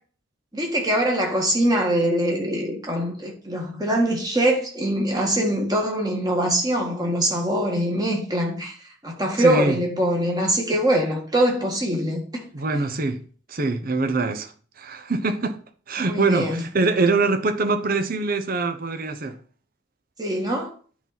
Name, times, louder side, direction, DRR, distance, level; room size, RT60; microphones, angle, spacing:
voice 1, 0.5-8.7 9.0-12.2 16.0-16.6 20.2-20.7, right 1 dB, 20° right, 1.8 m, -23 dB
voice 2, 9.4-9.8 12.5-13.2 13.5-14.5 14.8-15.6 15.9-19.4, right 3 dB, 45° right, 0.8 m, -23 dB
9.8 x 4.0 x 5.8 m
head